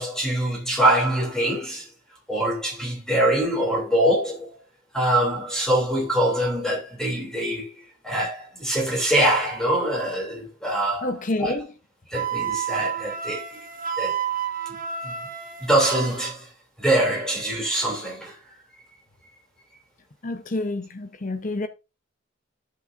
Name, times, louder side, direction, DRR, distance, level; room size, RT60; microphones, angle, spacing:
voice 1, 0.0-1.9 2.3-4.5 4.9-7.7 8.0-11.5 12.1-13.6 14.0-14.1 15.0-15.1 15.6-16.5 16.8-18.3, right 1 dB, 5° left, 2.8 m, -24 dB
voice 2, 11.0-11.7 20.2-21.7, left 2 dB, 40° left, 0.8 m, -28 dB
Wind instrument woodwind instrument, 12.1-16.3, right 8 dB, 45° right, 1.3 m, -30 dB
12.5 x 6.0 x 2.5 m
head